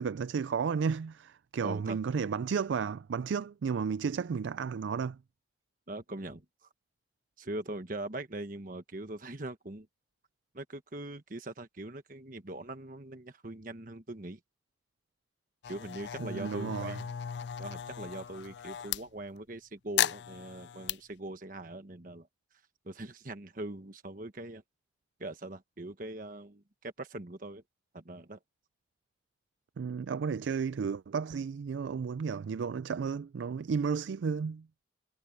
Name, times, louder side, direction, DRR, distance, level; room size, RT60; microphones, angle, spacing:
voice 1, 0.0-5.2 16.2-17.0 29.8-34.7, right 6 dB, 85° right, 0.4 m, -33 dB
voice 2, 1.6-2.0 5.9-6.7 7.4-9.9 10.5-14.4 15.7-17.1 17.6-22.3 22.8-24.6 25.2-27.6 27.9-28.4, right 2 dB, 45° right, 1.3 m, -41 dB
sound 1, 15.6-19.0 20.0-21.0, left 10 dB, 70° left, 0.4 m, -36 dB
head